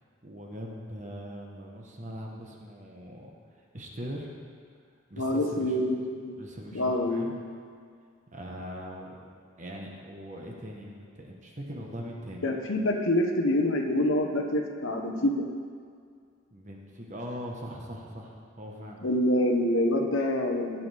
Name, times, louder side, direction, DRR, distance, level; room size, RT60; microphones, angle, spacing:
voice 1, 0.2-4.3 5.1-5.8 6.4-7.3 8.3-9.3 9.6-12.4 16.5-19.0, equal, 35° right, -1 dB, 1.2 m, -41 dB
voice 2, 5.2-6.3 6.7-7.3 12.4-15.5 19.0-20.9, left 1 dB, 70° left, 3 dB, 1.1 m, -26 dB
17.5 x 6.9 x 3.5 m, 2.1 s
head